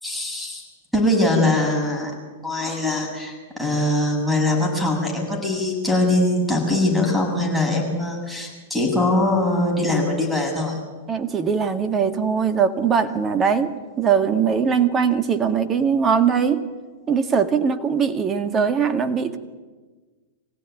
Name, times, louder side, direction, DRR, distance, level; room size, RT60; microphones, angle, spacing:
voice 1, 0.0-0.6 0.9-2.1 2.4-10.8, left 1 dB, ahead, -2 dB, 7.6 m, -22 dB
voice 2, 11.1-16.6 17.1-19.4, right 6 dB, 25° right, 8 dB, 1.9 m, -21 dB
25.0 x 16.0 x 9.4 m, 1.4 s
figure-of-eight pair, 100°, 0 cm